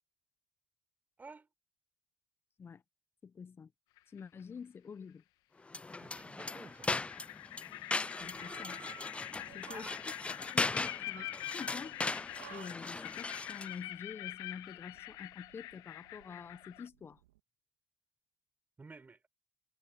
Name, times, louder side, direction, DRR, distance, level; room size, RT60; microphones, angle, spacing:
voice 1, 3.2-3.7 4.1-5.2 8.2-8.8 9.5-10.1 10.5-12.0 12.5-17.2, left 6 dB, 30° left, 1.4 m, -47 dB
sound 1, 4.0-4.4 5.9-6.0 6.4-16.9, left 18 dB, 60° left, 2.0 m, -46 dB
sound 2, 5.7-13.8, left 3 dB, 15° left, 0.6 m, -38 dB
voice 2, 6.0-7.0 9.7-10.0 18.8-19.3, right 4 dB, 25° right, 5.4 m, -52 dB
sound 3, 8.2-17.4, right 14 dB, 75° right, 3.6 m, -56 dB
hypercardioid pair, 60°, 7 cm